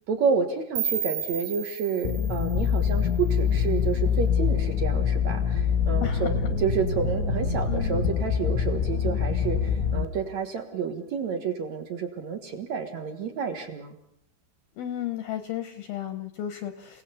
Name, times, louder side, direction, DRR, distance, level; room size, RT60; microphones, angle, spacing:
voice 1, 0.1-14.0, right 6 dB, 55° right, 7 dB, 2.1 m, -30 dB
sound 1, 0.8-3.7, right 8 dB, 75° right, 4.2 m, -33 dB
sound 2, 2.1-10.1, left 7 dB, 85° left, 3.9 m, -25 dB
voice 2, 6.0-6.5 7.7-8.1 14.8-17.0, left 11 dB, 70° left, 9 dB, 2.4 m, -34 dB
29.5 x 18.0 x 7.0 m, 0.69 s
omnidirectional pair, 5.4 m